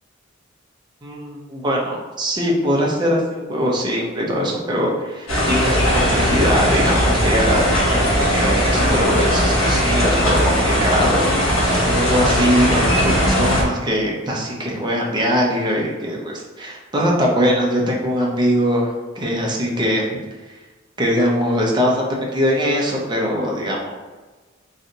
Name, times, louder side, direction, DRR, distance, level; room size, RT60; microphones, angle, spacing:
voice 1, 1.0-20.2 21.0-23.9, equal, 20° right, -2 dB, 0.7 m, -21 dB
sound 1, 5.3-13.6, equal, 85° left, 1.2 m, -18 dB
3.2 x 2.7 x 3.8 m, 1.3 s
head